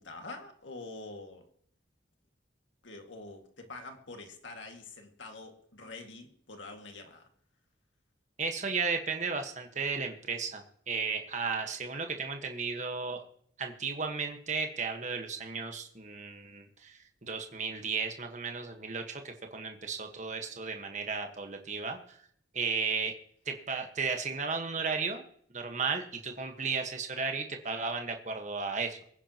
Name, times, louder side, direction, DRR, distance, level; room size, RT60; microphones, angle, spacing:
voice 1, 0.0-1.4 2.8-7.3, left 3 dB, 75° left, 2.1 m, -46 dB
voice 2, 8.4-13.2 13.6-22.2 22.5-23.1 23.4-25.2 25.5-29.0, right 5 dB, 40° right, 1.4 m, -34 dB
24.0 x 9.9 x 3.0 m
head